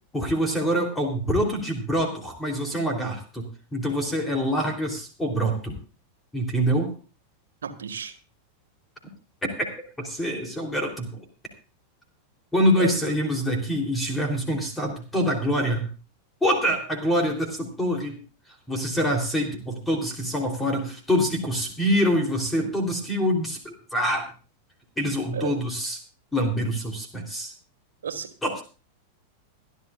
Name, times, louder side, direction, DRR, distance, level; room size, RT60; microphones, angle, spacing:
voice 1, 0.1-3.4 3.7-5.8 6.3-6.9 9.4-9.7 10.0-11.2 12.5-15.8 16.4-18.2 18.7-24.2 25.0-26.0 26.3-27.5 28.4-28.6, equal, 10° left, 2 dB, 3.2 m, -25 dB
voice 2, 7.6-8.2 12.8-13.1 25.3-25.6 28.0-28.3, right 7 dB, 65° right, 7 dB, 1.8 m, -32 dB
26.0 x 11.0 x 2.4 m, 0.35 s
figure-of-eight pair, 90°, 0 cm